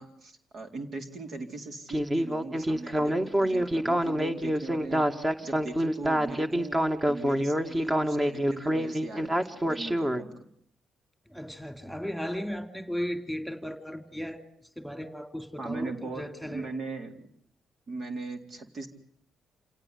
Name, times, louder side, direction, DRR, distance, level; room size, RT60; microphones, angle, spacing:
voice 1, 0.0-6.8 7.1-10.5 15.6-17.3 17.9-18.9, right 3 dB, 60° right, 5 dB, 4.0 m, -40 dB
Speech synthesizer, 1.9-10.2, equal, 20° right, 2.4 m, -26 dB
voice 2, 11.3-14.4 14.8-16.7, equal, ahead, 8 dB, 3.1 m, -36 dB
28.0 x 17.5 x 9.8 m, 0.67 s
supercardioid pair, 60°, 0 cm